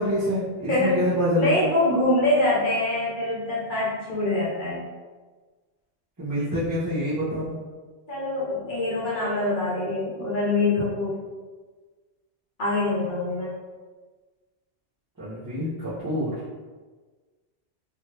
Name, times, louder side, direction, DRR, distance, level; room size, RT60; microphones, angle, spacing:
voice 1, 0.0-1.6 6.2-7.6 15.2-16.3, equal, 20° right, -14 dB, 0.7 m, -26 dB
voice 2, 1.4-4.9 8.1-11.2 12.6-13.5, left 2 dB, 50° left, -8 dB, 1.1 m, -24 dB
2.6 x 2.5 x 3.1 m, 1.4 s
omnidirectional pair, 1.1 m